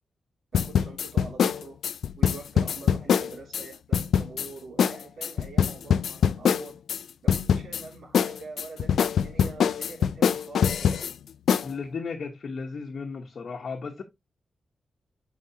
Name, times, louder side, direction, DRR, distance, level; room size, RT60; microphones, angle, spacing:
sound 1, 0.5-3.6 3.9-4.5 4.8-4.9 5.2-7.0 7.3-7.8 8.1-11.1 11.5-11.7, left 8 dB, 90° left, 0.3 m, -23 dB
voice 1, 0.5-1.8 2.2-6.8 7.2-11.1, right 4 dB, 80° right, 2.7 m, -44 dB
voice 2, 11.6-14.0, left 5 dB, 60° left, 1.0 m, -35 dB
7.1 x 4.7 x 2.8 m
wide cardioid pair, 105°, 0 cm